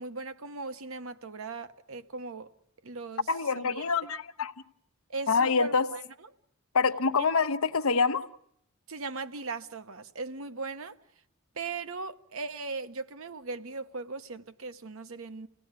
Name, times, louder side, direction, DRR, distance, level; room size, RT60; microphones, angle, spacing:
voice 1, 0.0-2.5 2.8-3.3 3.5-3.8 5.1-6.3 7.2-7.3 8.9-10.9 11.5-15.5, right 4 dB, 70° right, 0.9 m, -38 dB
voice 2, 3.3-4.5 5.3-5.9 6.7-8.2, left 5 dB, 80° left, 0.9 m, -26 dB
27.5 x 17.0 x 8.1 m
head